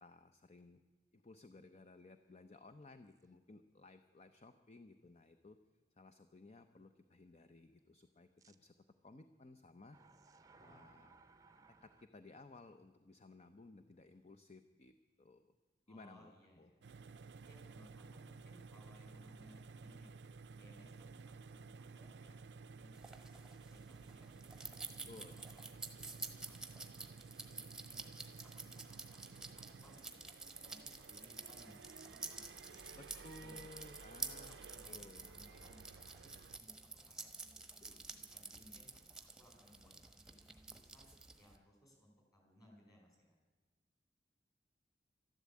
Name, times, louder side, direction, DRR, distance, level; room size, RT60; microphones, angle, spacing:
voice 1, 0.0-0.8 1.1-5.6 6.0-8.7 9.0-10.0 10.6-11.2 11.8-15.5 15.9-16.7 25.1-25.4 33.2-35.3, left 2 dB, 40° left, 10 dB, 0.6 m, -58 dB
sound 1, 3.1-3.2 3.9-4.0 8.4-8.6 9.8-12.1, right 3 dB, 20° right, 0.7 m, -63 dB
voice 2, 15.9-16.8 17.4-20.2 20.6-25.7 26.0-28.1 28.6-33.8 34.3-38.9 39.4-40.4 40.7-41.1 41.4-43.4, equal, 20° left, 0 dB, 5.0 m, -65 dB
sound 2, 16.8-36.6, right 4 dB, 80° right, 0.5 m, -55 dB
sound 3, 22.9-41.6, right 3 dB, 5° right, 1.2 m, -50 dB
13.0 x 12.0 x 8.4 m, 1.3 s
head